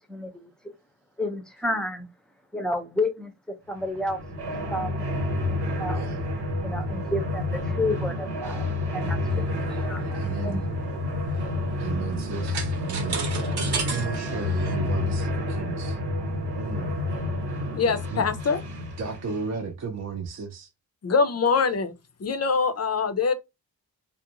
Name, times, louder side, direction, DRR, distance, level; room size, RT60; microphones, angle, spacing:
voice 1, 0.1-0.5 1.2-2.1 2.5-4.2 4.7-5.1 5.5-6.1 6.6-8.7 8.9-10.8, left 1 dB, ahead, 0.6 m, -31 dB
sound 1, 3.8-19.6, left 2 dB, 90° right, 1.2 m, -29 dB
voice 2, 5.9-6.2 10.1-10.6 11.8-13.2 13.6-16.0 16.5-17.0 18.1-18.3 19.0-20.7, right 5 dB, 40° right, 0.6 m, -33 dB
sound 2, 9.3-14.8, right 4 dB, 75° right, 0.9 m, -35 dB
voice 3, 17.7-18.6 21.0-21.9 22.2-23.3, left 5 dB, 40° left, 0.6 m, -23 dB
2.5 x 2.1 x 2.8 m
cardioid pair, 50°, 40 cm